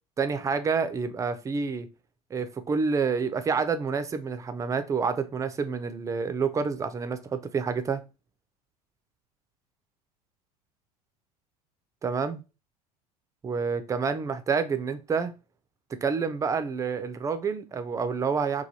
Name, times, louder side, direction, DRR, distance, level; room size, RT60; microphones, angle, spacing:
voice 1, 0.2-1.9 2.3-8.0 12.0-12.4 13.4-15.3 16.0-18.6, right 5 dB, 15° right, 0.3 m, -28 dB
3.1 x 2.2 x 2.7 m
figure-of-eight pair, 70°, 20 cm